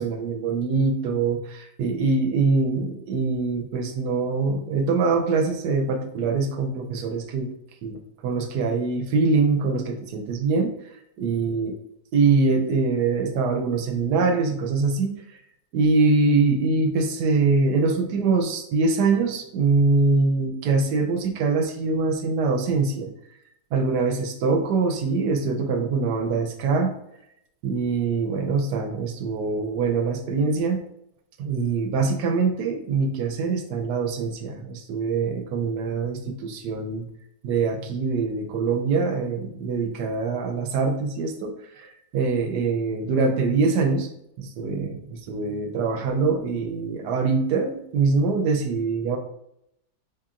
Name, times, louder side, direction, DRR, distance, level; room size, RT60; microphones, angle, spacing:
voice 1, 0.0-7.5 7.8-10.7 11.2-11.8 12.1-15.4 15.7-23.1 23.7-26.9 27.6-30.8 31.4-37.1 37.4-44.1 44.4-49.2, right 4 dB, 75° right, 5 dB, 1.1 m, -23 dB
4.8 x 2.8 x 2.4 m, 0.76 s
omnidirectional pair, 1.9 m